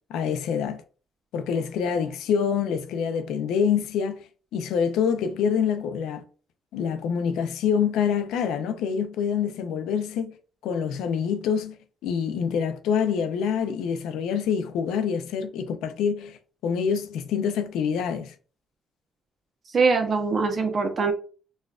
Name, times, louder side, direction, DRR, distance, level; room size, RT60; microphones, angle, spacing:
voice 1, 0.1-0.8 1.3-4.2 4.5-6.2 6.7-10.3 10.6-11.8 12.0-18.3, left 7 dB, 90° left, 0.4 m, -26 dB
voice 2, 19.7-21.1, right 4 dB, 45° right, 0.8 m, -22 dB
4.0 x 2.4 x 2.3 m
cardioid pair, 90°, 0 cm